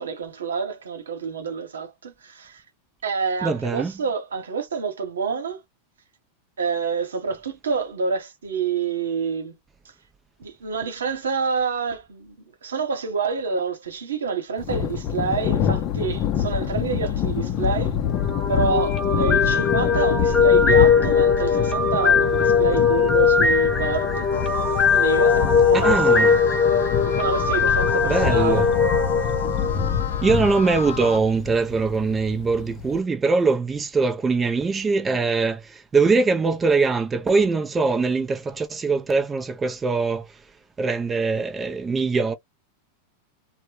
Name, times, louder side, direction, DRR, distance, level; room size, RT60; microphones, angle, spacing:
voice 1, 0.0-2.6 3.0-5.6 6.6-9.5 10.4-18.0 18.5-24.3 24.9-26.4 27.0-28.7, right 5 dB, 85° right, 0.9 m, -28 dB
voice 2, 3.4-3.9 25.7-26.4 28.1-28.7 30.2-40.3 40.8-42.3, right 4 dB, 20° right, 0.5 m, -22 dB
Thunder, 14.6-33.0, left 8 dB, 40° left, 0.5 m, -27 dB
sound 1, 18.1-30.2, left 5 dB, 25° left, 0.9 m, -20 dB
sound 2, 24.3-31.2, left 6 dB, 80° left, 0.8 m, -33 dB
2.1 x 2.1 x 3.0 m
hypercardioid pair, 105°, 0 cm